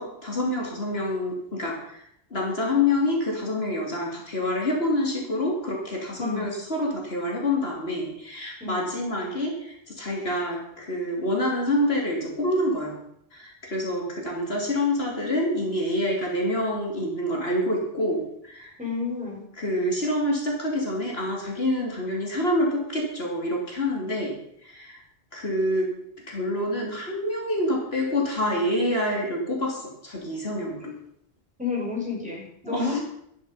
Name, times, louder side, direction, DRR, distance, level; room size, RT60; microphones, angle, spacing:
voice 1, 0.0-2.0 2.3-13.0 13.3-18.7 19.6-24.3 24.6-25.0 25.3-25.9 26.3-30.9 32.6-33.0, left 1 dB, 65° left, -1 dB, 2.9 m, -27 dB
voice 2, 6.2-6.5 8.6-8.8 18.8-19.4 30.8-30.9 31.6-33.0, left 4 dB, 5° right, -4 dB, 5.6 m, -30 dB
12.5 x 10.5 x 5.5 m, 0.72 s
omnidirectional pair, 1.1 m